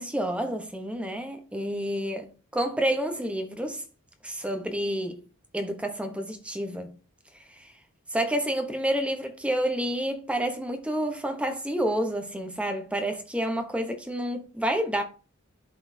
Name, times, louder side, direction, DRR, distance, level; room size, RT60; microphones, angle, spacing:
voice 1, 0.0-3.8 4.2-5.2 5.5-6.9 7.6-7.7 8.1-15.0, right 1 dB, 5° right, 0.9 m, -29 dB
11.5 x 4.1 x 2.7 m
head